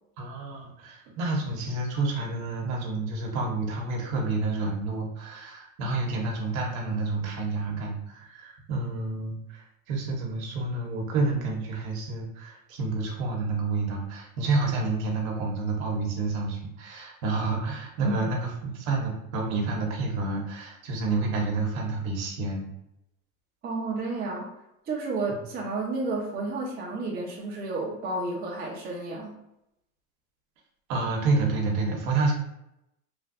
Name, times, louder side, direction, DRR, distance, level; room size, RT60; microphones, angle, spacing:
voice 1, 0.2-22.7 30.9-32.3, right 3 dB, 75° right, 0 dB, 1.0 m, -29 dB
voice 2, 23.6-24.5 24.9-29.3, right 3 dB, 25° right, -2 dB, 0.7 m, -31 dB
3.2 x 2.5 x 2.5 m, 0.83 s
supercardioid pair, 135°, 41 cm